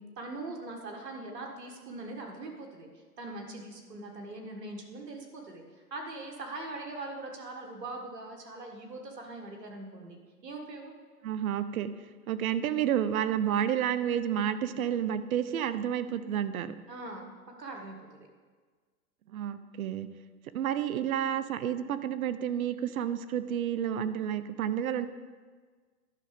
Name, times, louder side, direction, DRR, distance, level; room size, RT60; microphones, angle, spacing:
voice 1, 0.2-2.9 3.2-5.6 5.9-10.9 16.9-17.3 17.6-18.3, right 2 dB, 90° right, 2 dB, 1.7 m, -41 dB
voice 2, 11.2-11.9 12.3-16.8 19.3-20.1 20.5-25.1, right 9 dB, 60° right, 13 dB, 0.7 m, -30 dB
11.5 x 5.8 x 5.1 m, 1.5 s
hypercardioid pair, 135°, 47 cm